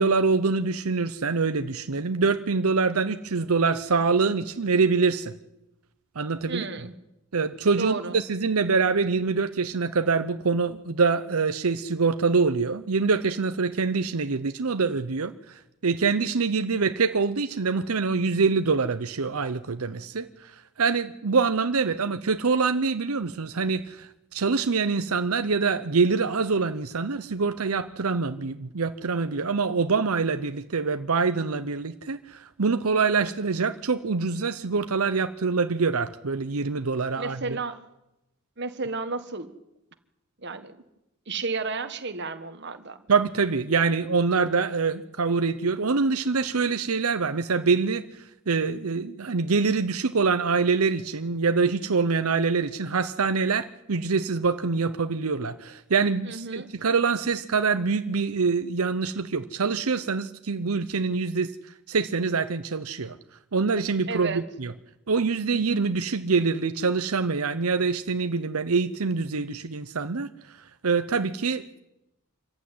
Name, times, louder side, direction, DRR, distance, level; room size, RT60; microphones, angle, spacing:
voice 1, 0.0-5.3 6.2-6.6 7.3-20.5 20.8-37.6 43.1-61.5 61.9-63.2 63.5-64.7 65.1-70.3 70.8-71.8, right 4 dB, 85° right, 9 dB, 0.8 m, -25 dB
voice 2, 6.5-6.9 7.8-8.2 37.2-37.8 38.6-39.5 40.4-40.8 41.3-43.0 56.2-56.7 64.1-64.4, right 4 dB, 55° right, 9 dB, 1.6 m, -32 dB
25.5 x 15.0 x 9.6 m, 0.92 s
head